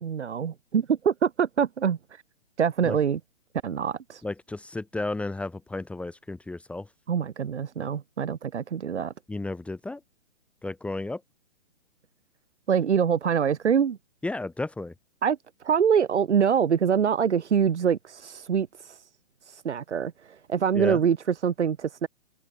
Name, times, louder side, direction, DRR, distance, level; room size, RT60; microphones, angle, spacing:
voice 1, 0.0-2.2 2.6-3.2 3.6-4.2 7.1-9.1 12.7-14.0 15.2-15.4 15.6-19.1 19.4-22.1, right 7 dB, 70° right, 2.9 m, -25 dB
voice 2, 4.2-6.9 9.3-10.0 10.6-11.2 14.2-14.9 20.7-21.0, left 2 dB, 5° left, 2.2 m, -33 dB
open air
hypercardioid pair, 150°, 36 cm